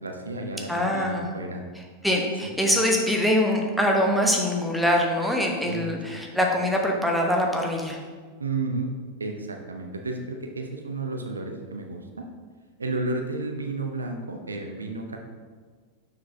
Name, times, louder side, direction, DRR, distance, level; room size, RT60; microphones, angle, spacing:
voice 1, 0.0-1.6 2.4-2.5 5.6-6.2 8.4-8.9 9.2-12.2 12.8-15.2, right 3 dB, 75° right, 4 dB, 0.6 m, -32 dB
voice 2, 0.7-1.3 2.0-8.0, equal, ahead, 0 dB, 0.9 m, -23 dB
6.7 x 5.9 x 2.7 m, 1.5 s
figure-of-eight pair, 90°, 0 cm